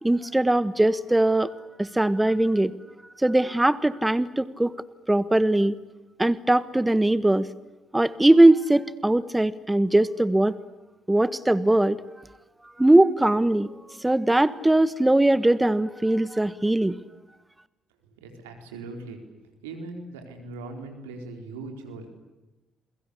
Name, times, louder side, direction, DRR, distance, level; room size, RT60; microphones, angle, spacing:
voice 1, 0.0-2.7 3.2-4.7 5.1-5.7 6.2-7.5 7.9-10.5 11.1-12.0 12.8-13.7 14.0-16.9, right 1 dB, 10° right, 15 dB, 1.4 m, -20 dB
voice 2, 18.2-19.2 19.6-22.1, right 3 dB, 85° right, 5 dB, 4.4 m, -39 dB
29.5 x 22.5 x 8.4 m, 1.1 s
hypercardioid pair, 50°, 0 cm